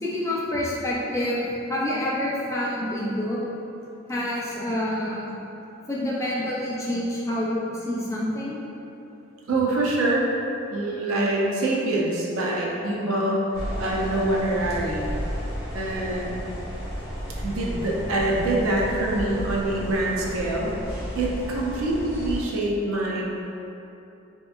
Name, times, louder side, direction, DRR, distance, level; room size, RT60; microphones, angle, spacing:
voice 1, 0.0-3.4 4.1-5.4 5.8-8.6, left 1 dB, 15° left, -6 dB, 0.4 m, -27 dB
voice 2, 9.5-10.2 10.7-13.5 13.8-15.1 15.7-16.4 17.4-20.8 21.1-23.2, right 2 dB, 85° right, -3 dB, 0.5 m, -25 dB
sound 1, 13.5-22.4, equal, 5° right, 1.4 m, -33 dB
3.4 x 2.8 x 2.3 m, 2.9 s
head